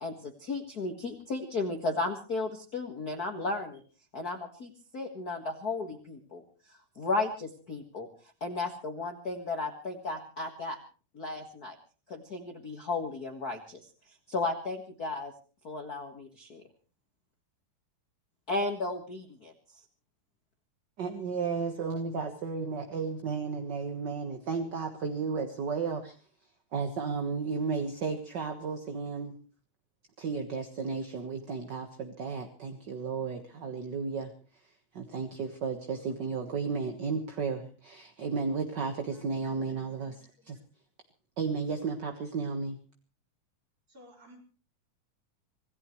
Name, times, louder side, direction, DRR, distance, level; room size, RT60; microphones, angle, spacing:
voice 1, 0.0-3.8 4.1-6.4 7.0-8.1 8.4-10.8 11.1-11.8 12.1-13.8 14.3-15.3 15.6-16.6 18.5-19.5, left 3 dB, 40° left, 4 dB, 1.6 m, -34 dB
voice 2, 21.0-26.2 26.7-29.4 30.2-34.3 34.6-40.6 41.4-42.8, right 5 dB, 45° right, 5 dB, 1.5 m, -33 dB
voice 3, 39.1-40.2 43.9-44.4, equal, 30° right, 1 dB, 5.5 m, -57 dB
26.0 x 17.5 x 3.2 m, 0.37 s
omnidirectional pair, 3.6 m